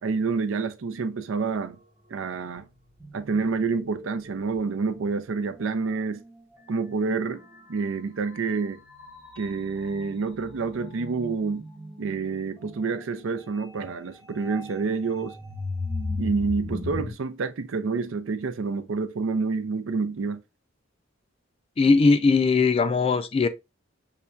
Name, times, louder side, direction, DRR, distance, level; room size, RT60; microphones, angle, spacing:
voice 1, 0.0-1.8 2.1-2.7 3.1-6.2 6.7-7.4 7.7-8.8 9.4-11.7 12.0-15.4 16.2-20.4, right 4 dB, 90° right, 0.5 m, -28 dB
sound 1, 1.6-1.8 2.6-17.1, left 3 dB, 20° right, 1.1 m, -39 dB
voice 2, 21.8-23.5, left 4 dB, 30° left, 0.3 m, -19 dB
5.6 x 2.2 x 2.4 m
head